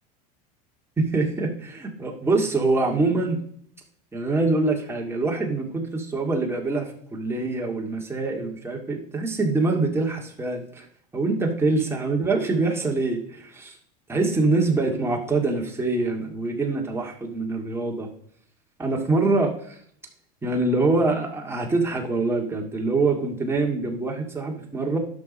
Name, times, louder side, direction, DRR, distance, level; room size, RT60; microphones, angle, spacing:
voice 1, 1.0-3.4 4.1-10.9 11.1-13.7 14.1-18.1 18.8-19.8 20.4-25.0, right 3 dB, 10° right, 1 dB, 2.2 m, -24 dB
10.5 x 6.1 x 5.5 m, 0.63 s
supercardioid pair, 120°, 21 cm